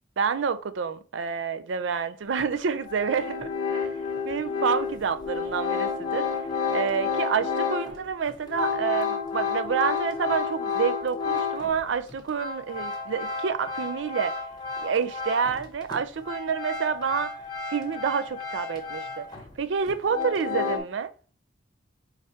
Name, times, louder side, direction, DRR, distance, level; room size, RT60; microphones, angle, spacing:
voice 1, 0.2-3.9 4.3-6.5 6.7-14.4 14.8-17.4 17.7-19.3 19.6-21.1, right 6 dB, 70° right, 0.4 m, -28 dB
sound 1, 2.4-2.5 2.9-11.8 12.1-15.7 15.9-19.5 19.9-20.8, left 5 dB, 20° left, 0.8 m, -31 dB
4.8 x 3.2 x 2.8 m
head